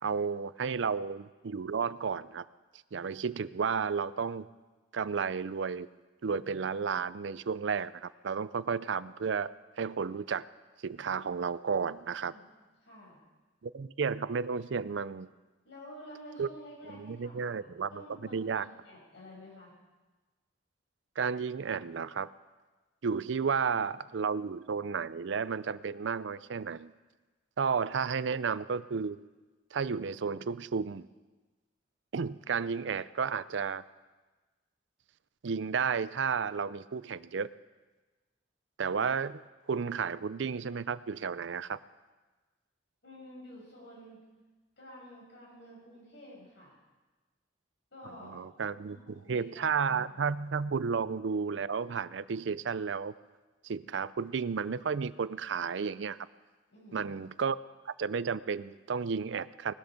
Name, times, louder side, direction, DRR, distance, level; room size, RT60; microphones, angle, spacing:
voice 1, 0.0-2.4 2.9-4.5 4.9-5.9 6.2-9.5 9.8-10.4 10.8-12.3 13.6-15.3 16.4-16.5 16.9-18.0 18.3-18.7 21.2-22.3 23.0-26.9 27.6-29.2 29.7-31.1 32.1-33.8 35.4-37.5 38.8-39.4 39.7-41.8 48.0-53.1 53.6-56.2 56.9-57.6 57.9-59.7, right 6 dB, 70° right, 17 dB, 0.5 m, -32 dB
voice 2, 12.8-13.2 15.6-19.7 43.0-44.2 44.8-46.7 47.9-48.4 48.8-50.3 56.7-57.1, equal, 65° left, -3 dB, 6.9 m, -50 dB
19.0 x 13.0 x 5.2 m, 1.2 s
head